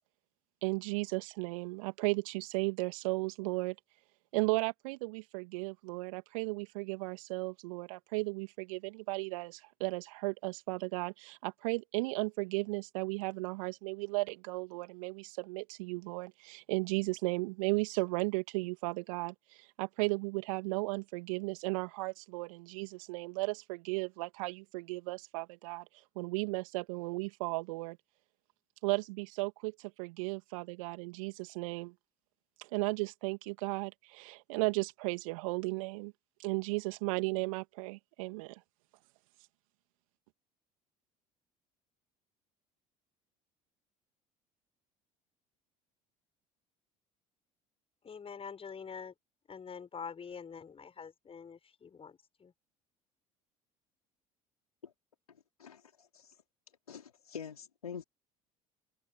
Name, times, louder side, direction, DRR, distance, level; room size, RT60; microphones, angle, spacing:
voice 1, 0.6-3.7 4.3-25.8 26.1-28.0 28.8-31.9 32.6-36.1 36.4-38.6, right 25 dB, 70° right, 2.8 m, -35 dB
voice 2, 48.0-49.1 49.5-52.1 52.4-52.5, left 6 dB, 30° left, 6.6 m, -45 dB
voice 3, 55.6-56.4 56.9-58.0, left 7 dB, 85° left, 4.2 m, -46 dB
figure-of-eight pair, 60°, 18 cm